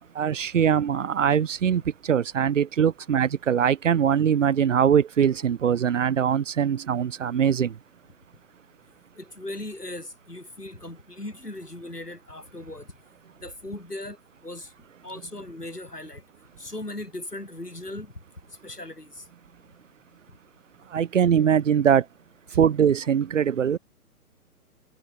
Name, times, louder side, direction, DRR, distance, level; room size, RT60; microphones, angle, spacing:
voice 1, 0.1-7.7 20.9-22.0 22.5-23.8, right 8 dB, 55° right, 1.5 m, -22 dB
voice 2, 9.2-12.9 13.4-14.2 14.4-14.7 15.0-16.2 16.6-18.1 18.6-19.3 22.5-22.6, left 1 dB, 90° left, 7.3 m, -38 dB
figure-of-eight pair, 130°, 46 cm